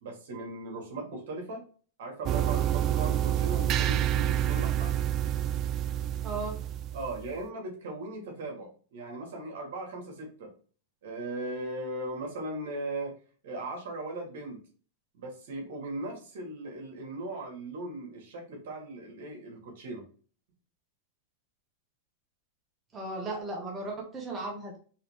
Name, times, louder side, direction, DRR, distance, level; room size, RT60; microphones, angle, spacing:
voice 1, 0.0-1.6 2.0-4.9 6.9-10.5 11.0-13.2 13.4-14.6 15.1-20.0, right 2 dB, 70° right, 1 dB, 2.0 m, -38 dB
sound 1, 2.3-7.4, right 11 dB, 35° right, 0.3 m, -28 dB
voice 2, 6.2-6.6 22.9-24.8, right 2 dB, 20° right, -1 dB, 1.3 m, -36 dB
4.9 x 3.2 x 3.3 m, 0.41 s
hypercardioid pair, 125°, 0 cm